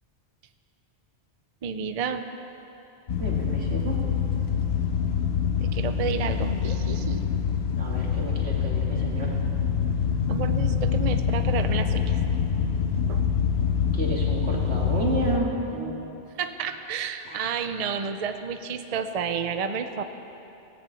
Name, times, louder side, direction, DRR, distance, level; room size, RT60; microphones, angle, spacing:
voice 1, 1.6-2.3 5.6-7.2 10.3-12.2 13.1-13.3 16.4-20.0, right 6 dB, 45° right, 8 dB, 0.6 m, -31 dB
sound 1, 3.1-15.4, left 7 dB, 70° left, 1.0 m, -25 dB
voice 2, 3.2-4.0 7.8-9.4 13.9-16.0 17.2-17.4, right 2 dB, 80° right, -2 dB, 2.3 m, -31 dB
17.5 x 7.1 x 8.4 m, 3.0 s
omnidirectional pair, 1.1 m